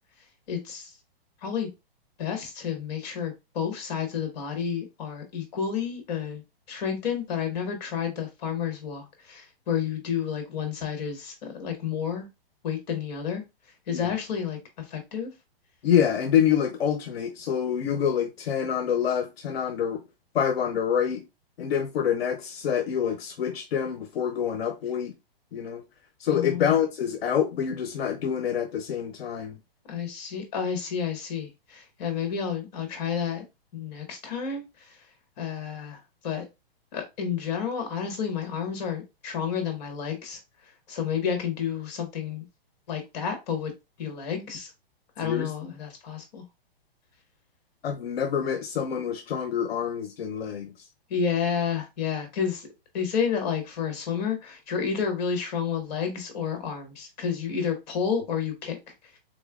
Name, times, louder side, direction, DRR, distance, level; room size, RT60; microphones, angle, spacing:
voice 1, 0.5-0.8 1.4-1.7 2.2-6.4 6.7-9.4 9.7-11.3 11.6-12.3 12.6-13.4 13.9-14.6 14.9-15.3 26.3-26.6 29.9-31.5 32.0-33.4 33.7-34.6 35.4-36.0 36.2-36.4 36.9-40.4 40.9-42.4 42.9-43.7 44.0-44.7 45.2-46.4 51.1-52.6 52.9-58.8, left 7 dB, 45° left, 1.4 m, -30 dB
voice 2, 15.8-20.0 20.3-21.2 21.6-25.1 25.5-25.8 26.2-29.6 45.2-45.7 47.8-50.7, left 8 dB, 80° left, 0.7 m, -26 dB
3.7 x 3.0 x 2.4 m
hypercardioid pair, 160°, 30 cm